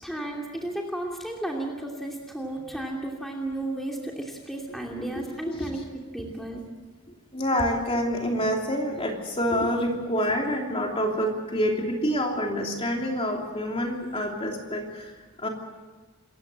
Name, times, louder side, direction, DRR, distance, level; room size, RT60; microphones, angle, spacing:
voice 1, 0.0-5.8 6.1-6.6, right 1 dB, ahead, -1 dB, 2.7 m, -33 dB
voice 2, 4.9-5.9 7.3-15.5, equal, 25° left, 1 dB, 3.1 m, -27 dB
27.0 x 15.0 x 7.9 m, 1.3 s
head